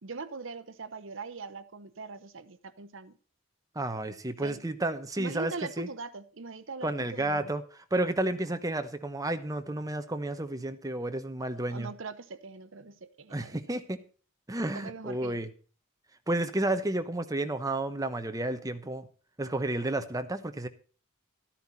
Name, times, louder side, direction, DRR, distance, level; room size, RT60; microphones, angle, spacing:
voice 1, 0.0-3.2 4.4-4.6 5.2-7.5 11.5-13.7 14.7-15.4, right 4 dB, 65° right, 0.9 m, -41 dB
voice 2, 3.7-5.9 6.8-7.6 7.9-11.9 13.3-14.0 14.5-15.5 16.3-19.1 19.4-20.7, right 2 dB, 15° right, 1.0 m, -31 dB
13.0 x 10.5 x 4.1 m
head